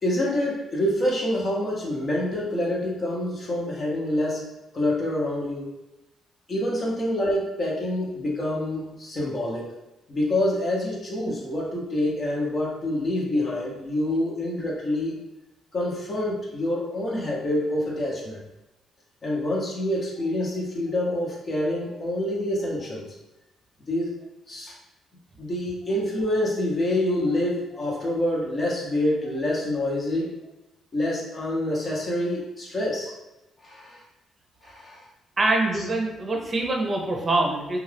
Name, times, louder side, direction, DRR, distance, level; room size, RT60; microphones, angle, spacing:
voice 1, 0.0-5.7 6.5-9.7 10.1-15.2 15.7-18.4 19.2-23.1 23.9-24.2 24.5-24.8 25.4-30.3 30.9-33.1 33.6-34.0 34.6-35.0 35.7-35.8, left 1 dB, 40° left, -3 dB, 0.9 m, -26 dB
voice 2, 35.4-37.8, right 2 dB, 30° right, 1 dB, 0.6 m, -24 dB
2.5 x 2.4 x 3.3 m, 0.96 s
cardioid pair, 90°, 0 cm